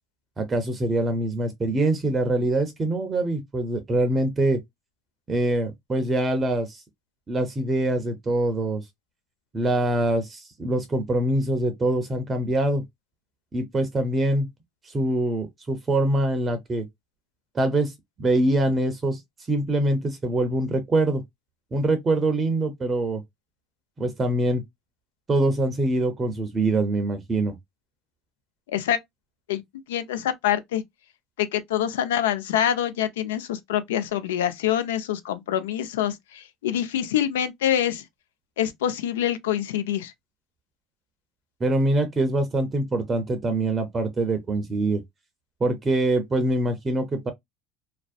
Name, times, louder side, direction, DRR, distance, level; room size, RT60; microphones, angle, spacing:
voice 1, 0.4-4.6 5.3-6.8 7.3-8.8 9.5-12.8 13.5-14.5 14.8-16.9 17.5-17.9 18.2-19.2 19.5-21.2 21.7-23.2 24.0-24.6 25.3-27.5 41.6-45.0 45.6-47.3, right 1 dB, 30° right, 0.5 m, -24 dB
voice 2, 28.7-29.0 29.5-29.6 29.9-30.8 31.4-38.0 38.6-40.1, left 10 dB, 90° left, 0.4 m, -25 dB
2.5 x 2.0 x 2.4 m
supercardioid pair, 90°, 0 cm